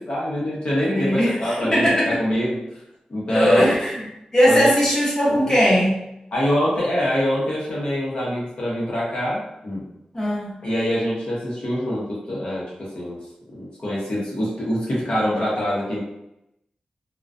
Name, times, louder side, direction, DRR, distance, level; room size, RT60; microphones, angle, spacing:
voice 1, 0.1-2.6 3.1-3.7 4.5-4.7 5.3-5.6 6.3-9.8 10.6-13.2 13.5-16.0, equal, 50° left, -7 dB, 0.7 m, -24 dB
voice 2, 0.9-2.2 3.3-6.0 10.1-10.5, equal, 20° left, -7 dB, 0.8 m, -19 dB
2.3 x 2.1 x 2.5 m, 0.84 s
wide cardioid pair, 135°, 2 cm